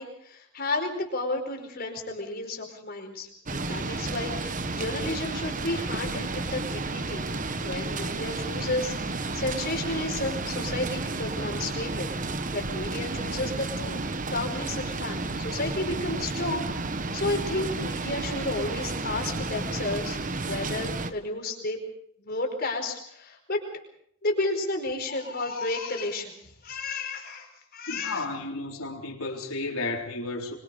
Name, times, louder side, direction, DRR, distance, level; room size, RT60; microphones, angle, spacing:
voice 1, 0.0-7.3 7.6-12.1 12.5-14.0 14.3-20.2 20.4-21.8 22.2-23.6 24.2-28.2, left 2 dB, 45° left, 2 dB, 4.8 m, -32 dB
sound 1, 3.5-21.1, right 3 dB, 40° right, 1.2 m, -32 dB
voice 2, 27.9-30.5, left 2 dB, 80° left, 0 dB, 3.9 m, -33 dB
25.0 x 23.5 x 5.1 m, 0.67 s
head